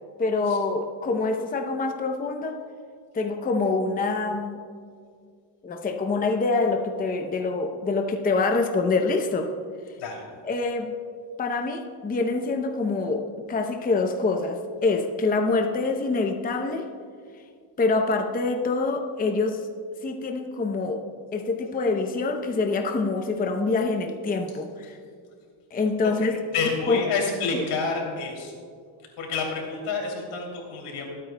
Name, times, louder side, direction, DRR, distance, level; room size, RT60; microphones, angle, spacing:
voice 1, 0.2-2.6 3.1-4.6 5.6-9.5 10.4-11.0 11.4-16.9 17.8-19.6 20.0-21.1 21.3-24.9 25.7-26.4 26.9-27.0 27.5-27.6, left 3 dB, 20° left, 4 dB, 0.6 m, -25 dB
voice 2, 26.0-28.5 29.2-31.1, left 4 dB, 80° left, 0 dB, 2.9 m, -29 dB
21.5 x 8.9 x 2.2 m, 2.1 s
cardioid pair, 125°, 49 cm